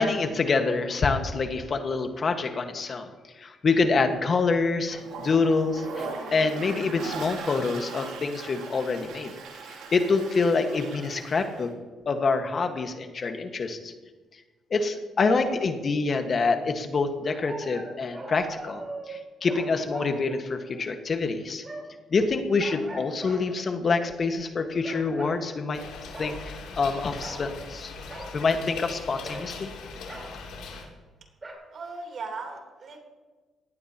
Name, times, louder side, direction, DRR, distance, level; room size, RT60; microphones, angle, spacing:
voice 1, 0.0-3.1 3.4-9.3 9.7-11.7 12.0-13.9 14.7-21.6 22.1-25.8 26.2-27.9 28.3-29.7, left 4 dB, 45° left, 6 dB, 1.5 m, -26 dB
Toilet flush, 4.9-11.7, right 4 dB, 90° right, 2.7 m, -39 dB
sound 1, 15.2-15.6 17.2-20.9 21.6-22.0 22.6-23.4 24.0-24.3 24.8-25.4 26.1-26.4 27.2-27.5 28.1-28.3 29.2-29.5 30.1-30.3 31.4-31.5, right 2 dB, 30° right, 4.0 m, -41 dB
sound 2, 25.7-30.8, left 4 dB, 90° left, 2.9 m, -40 dB
voice 2, 31.7-33.0, right 4 dB, 55° right, 2 dB, 3.5 m, -38 dB
18.0 x 15.0 x 2.9 m, 1.3 s
cardioid pair, 90°, 0 cm